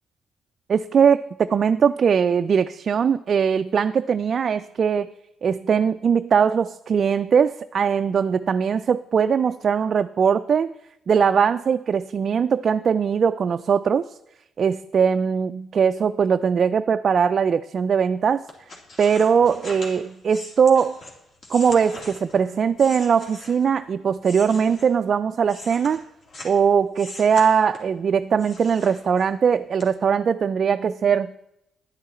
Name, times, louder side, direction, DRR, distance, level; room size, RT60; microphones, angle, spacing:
voice 1, 0.7-5.1 5.4-10.7 11.1-14.1 14.6-18.4 19.0-21.0 21.5-26.0 26.4-31.3, right 6 dB, 50° right, 9 dB, 0.3 m, -20 dB
sound 1, 18.5-23.8 24.2-26.6 26.9-28.0 28.4-29.4 29.8-29.9, left 2 dB, 55° left, 2.6 m, -41 dB
10.5 x 9.6 x 4.2 m, 0.85 s
cardioid pair, 90°, 0 cm